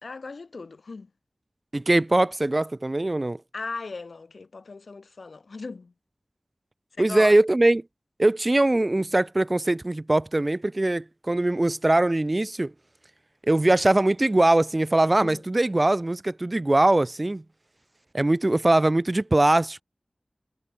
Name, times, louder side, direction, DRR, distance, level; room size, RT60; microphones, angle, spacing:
voice 1, 0.0-1.1 3.5-5.9 6.9-7.4 15.2-15.4, left 4 dB, 90° left, 4.4 m, -38 dB
voice 2, 1.7-3.4 7.0-7.8 8.2-12.7 13.4-17.4 18.1-19.8, right 2 dB, 35° right, 1.1 m, -21 dB
wide cardioid pair, 70°, 0 cm